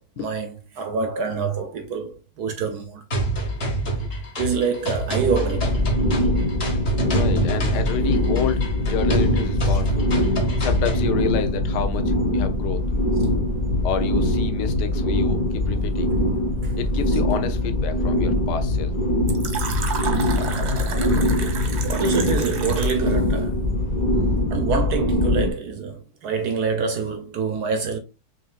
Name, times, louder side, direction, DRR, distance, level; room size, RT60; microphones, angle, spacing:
voice 1, 0.0-3.0 4.4-5.8 9.6-9.8 16.6-16.8 21.8-23.7 24.5-28.0, right 5 dB, 75° right, 0.9 m, -26 dB
sound 1, 3.1-11.1, right 2 dB, 40° left, 1.1 m, -26 dB
sound 2, 5.5-25.5, left 1 dB, 90° left, 0.4 m, -22 dB
voice 2, 7.1-10.1 10.6-12.8 13.8-16.1 16.8-18.9 20.9-21.0 21.9-22.0 23.4-23.6 24.2-24.4, left 8 dB, 70° left, 1.0 m, -29 dB
Fill (with liquid), 19.3-23.1, right 5 dB, 50° right, 0.8 m, -31 dB
6.2 x 2.7 x 2.3 m
omnidirectional pair, 2.3 m